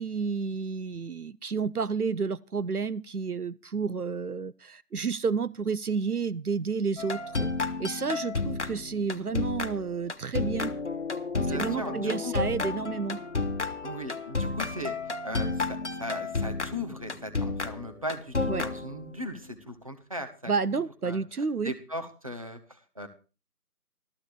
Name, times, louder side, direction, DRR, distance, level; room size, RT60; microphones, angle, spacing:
voice 1, 0.0-7.5 7.8-10.7 11.5-13.2 18.5-18.6 20.5-21.7, right 5 dB, 70° right, 16 dB, 0.8 m, -30 dB
sound 1, 7.0-19.3, left 3 dB, 50° left, 1.2 m, -32 dB
voice 2, 11.3-12.3 13.8-14.9 15.2-23.1, left 1 dB, 20° right, 7 dB, 1.2 m, -38 dB
14.5 x 14.0 x 4.8 m, 0.34 s
figure-of-eight pair, 165°, 46 cm